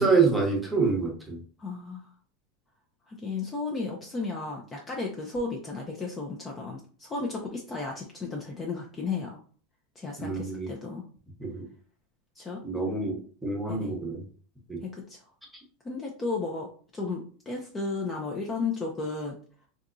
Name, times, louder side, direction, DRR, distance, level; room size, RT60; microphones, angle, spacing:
voice 1, 0.0-1.4 10.2-10.7 11.4-11.6 12.6-14.2 14.7-14.8, right 4 dB, 5° right, 0 dB, 0.9 m, -26 dB
voice 2, 1.6-2.1 3.1-9.4 10.0-11.0 12.4-12.6 13.7-13.9 14.8-15.2 15.8-19.4, left 3 dB, 15° left, -1 dB, 0.5 m, -34 dB
3.5 x 2.8 x 2.6 m, 0.43 s
supercardioid pair, 145°, 0 cm